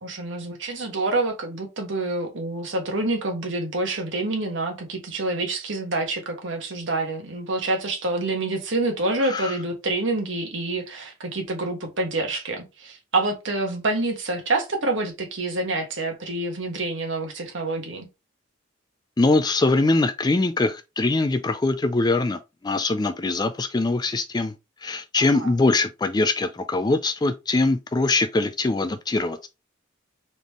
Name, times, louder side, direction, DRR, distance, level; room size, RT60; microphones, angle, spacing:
voice 1, 0.0-18.1 25.2-25.5, right 2 dB, 70° right, 1.4 m, -27 dB
voice 2, 9.2-9.5 19.2-22.4 22.6-24.5 24.8-29.5, left 2 dB, 20° left, 0.3 m, -22 dB
4.0 x 3.5 x 3.0 m
head